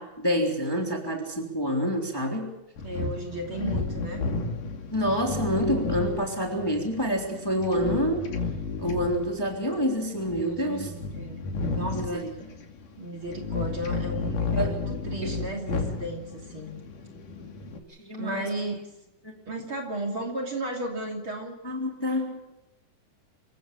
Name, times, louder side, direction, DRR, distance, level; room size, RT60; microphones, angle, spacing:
voice 1, 0.0-2.5 4.9-8.3 8.8-10.9 11.9-12.3 14.5-14.7 15.2-15.3 18.0-18.5 19.2-19.4 21.6-22.5, equal, 5° left, 1 dB, 3.2 m, -27 dB
sound 1, 2.8-17.8, left 4 dB, 90° left, 4.1 m, -33 dB
voice 2, 2.8-4.2 10.4-12.3 13.0-16.7 18.2-18.9 19.5-21.6, right 1 dB, 40° right, 2 dB, 3.5 m, -34 dB
26.5 x 15.5 x 7.4 m, 0.92 s
omnidirectional pair, 3.6 m